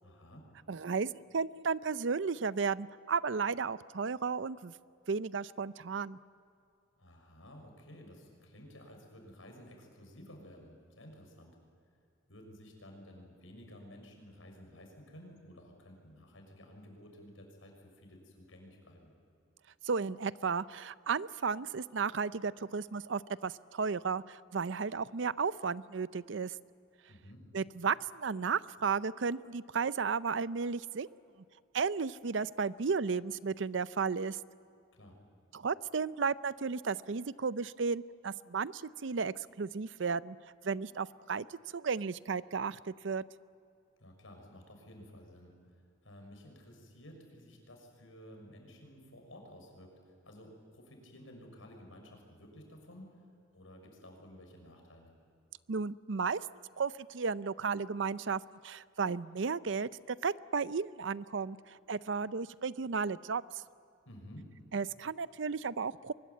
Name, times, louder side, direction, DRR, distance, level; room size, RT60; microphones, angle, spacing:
voice 1, 0.0-0.5 7.0-11.6 12.3-19.1 27.1-27.5 34.9-35.2 44.0-45.5 46.0-49.9 50.2-53.2 53.5-55.1 64.0-64.5, equal, 85° left, 2 dB, 6.2 m, -53 dB
voice 2, 0.7-4.7 5.1-6.2 19.8-26.5 27.5-31.1 31.7-34.4 35.5-40.4 40.6-43.2 55.7-56.5 56.8-63.4 64.7-66.1, right 5 dB, 65° right, 17 dB, 0.5 m, -34 dB
24.0 x 21.0 x 9.5 m, 2.6 s
head